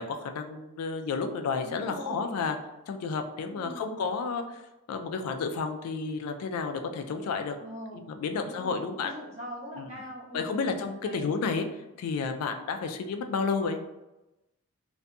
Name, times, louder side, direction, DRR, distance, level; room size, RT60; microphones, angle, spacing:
voice 1, 0.0-2.6 2.9-4.6 4.9-7.6 7.9-9.1 9.8-9.9 10.3-11.7 12.0-13.8, left 4 dB, 80° left, 6 dB, 0.3 m, -31 dB
voice 2, 1.6-2.4 3.5-3.9 7.6-10.6 11.0-11.3, equal, 30° right, -7 dB, 0.8 m, -42 dB
2.6 x 2.6 x 2.2 m, 0.98 s
head